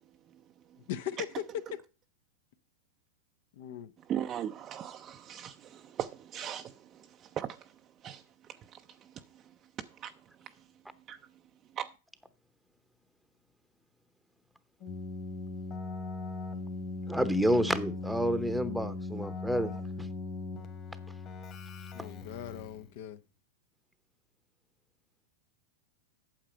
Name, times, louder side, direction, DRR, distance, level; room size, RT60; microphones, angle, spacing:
voice 1, 0.9-1.2 3.6-3.9 21.9-23.2, left 10 dB, 65° left, 0.8 m, -40 dB
voice 2, 4.1-7.7 8.0-8.2 8.5-9.4 9.8-10.1 10.4-10.5 11.1-11.2 11.7-11.9, right 10 dB, 30° right, 0.5 m, -39 dB
Keyboard (musical), 14.8-22.9, left 3 dB, 35° left, 1.8 m, -39 dB
voice 3, 17.1-19.7 20.0-20.1, equal, ahead, 0.9 m, -29 dB
8.8 x 7.3 x 5.1 m
hypercardioid pair, 135°, 0 cm